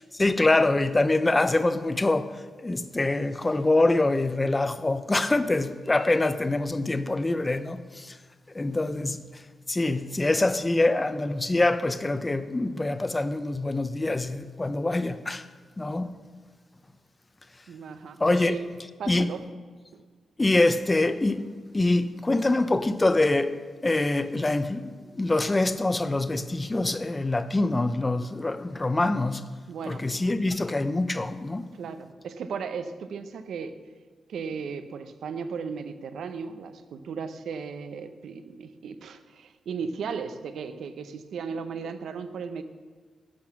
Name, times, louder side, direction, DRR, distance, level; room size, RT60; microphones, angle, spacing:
voice 1, 0.1-8.2 8.5-9.4 9.7-15.4 15.8-16.1 18.2-18.6 19.1-19.3 20.4-21.5 21.7-23.6 23.8-29.4 29.8-31.7, left 2 dB, 20° left, 0.6 m, -25 dB
voice 2, 17.7-18.6 19.0-19.4 19.9-20.0 29.7-30.1 31.7-33.8 34.3-42.6, right 6 dB, 80° right, 0.7 m, -36 dB
11.5 x 8.7 x 6.0 m
wide cardioid pair, 130°, 0 cm